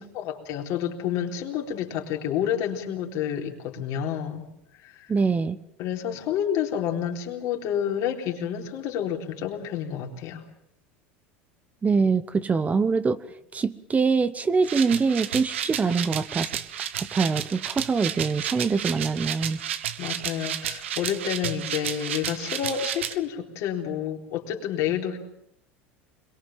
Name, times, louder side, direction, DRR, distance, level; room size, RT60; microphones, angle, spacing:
voice 1, 0.1-4.4 4.8-5.1 5.8-10.4 20.0-25.2, left 9 dB, 60° left, 2 dB, 4.0 m, -29 dB
voice 2, 5.1-5.6 11.8-13.2 13.5-16.5 17.0-19.6, right 4 dB, 25° right, 14 dB, 1.1 m, -24 dB
sound 1, 14.6-23.1, right 10 dB, 90° right, 1.3 m, -32 dB
22.5 x 22.5 x 7.5 m, 0.75 s
hypercardioid pair, 90°, 6 cm